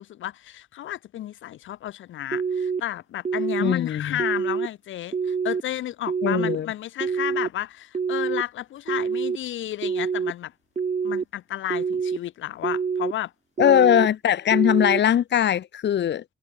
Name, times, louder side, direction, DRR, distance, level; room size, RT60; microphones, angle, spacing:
voice 1, 0.0-10.5 11.0-13.3 13.6-13.9, left 13 dB, 80° left, 2.8 m, -32 dB
sound 1, 2.3-2.8 3.3-3.7 4.2-4.7 5.1-5.6 6.1-6.6 7.0-7.5 7.9-8.4 8.9-9.4 9.8-10.3 10.8-11.2 11.7-12.2 12.6-13.1 13.6-14.1 14.5-15.0, right 6 dB, 35° right, 1.5 m, -26 dB
voice 2, 3.6-4.2 6.2-6.7 13.6-16.2, left 10 dB, 60° left, 2.2 m, -20 dB
cardioid pair, 90°, 20 cm